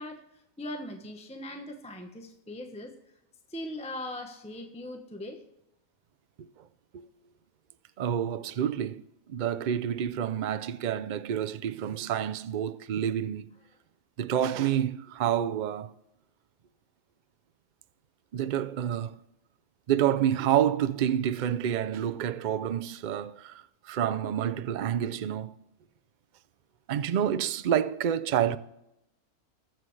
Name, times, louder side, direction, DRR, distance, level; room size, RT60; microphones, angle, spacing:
voice 1, 0.0-2.9 3.5-5.4, left 1 dB, 5° left, 0.9 m, -40 dB
voice 2, 8.0-13.5 14.2-15.9 18.3-19.1 19.9-25.6 26.9-28.6, right 10 dB, 75° right, 0.4 m, -28 dB
21.5 x 7.7 x 3.3 m
omnidirectional pair, 1.5 m